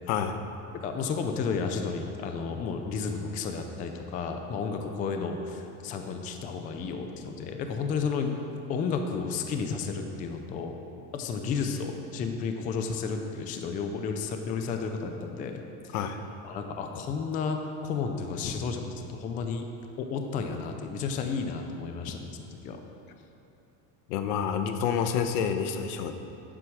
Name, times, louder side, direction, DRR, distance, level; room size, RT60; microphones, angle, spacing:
voice 1, 0.1-0.4 15.9-16.2 24.1-26.1, left 7 dB, 80° left, 8 dB, 1.0 m, -28 dB
voice 2, 0.8-8.3 8.7-10.8 11.1-15.9 16.4-19.7 20.0-22.8, left 5 dB, 20° left, 5 dB, 0.3 m, -32 dB
9.6 x 7.8 x 6.2 m, 2.8 s
cardioid pair, 160°, 44 cm